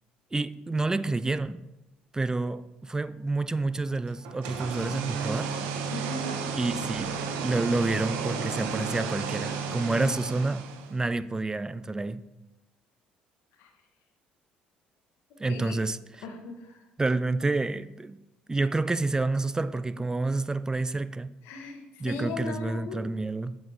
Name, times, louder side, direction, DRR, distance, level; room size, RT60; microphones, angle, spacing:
voice 1, 0.3-1.6 2.1-5.5 6.5-7.2 7.4-10.6 10.9-12.2 15.4-16.3 17.0-18.2 18.5-21.3 22.0-23.6, right 3 dB, 15° right, 0.3 m, -29 dB
sound 1, 4.2-11.0, right 5 dB, 80° right, 0.7 m, -33 dB
voice 2, 5.9-6.3 15.5-15.8 16.2-16.6 21.5-23.1, left 3 dB, 75° left, 1.1 m, -37 dB
7.1 x 4.1 x 4.6 m
hypercardioid pair, 65°, 4 cm